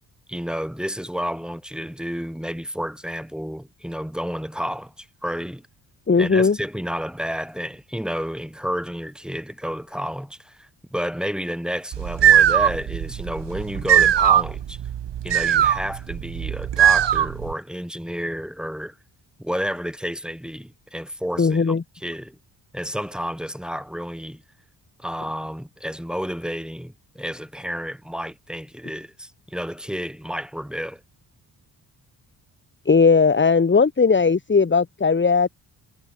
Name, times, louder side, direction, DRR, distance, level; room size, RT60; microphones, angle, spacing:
voice 1, 0.3-5.7 6.1-14.8 15.2-19.0 19.4-22.4 22.7-24.4 25.0-31.0, equal, ahead, 5.7 m, -31 dB
voice 2, 6.1-6.6 21.4-21.8 32.9-35.5, left 5 dB, 25° left, 1.3 m, -17 dB
sound 1, 11.9-17.5, right 10 dB, 65° right, 1.7 m, -19 dB
cardioid pair, 60°, 45 cm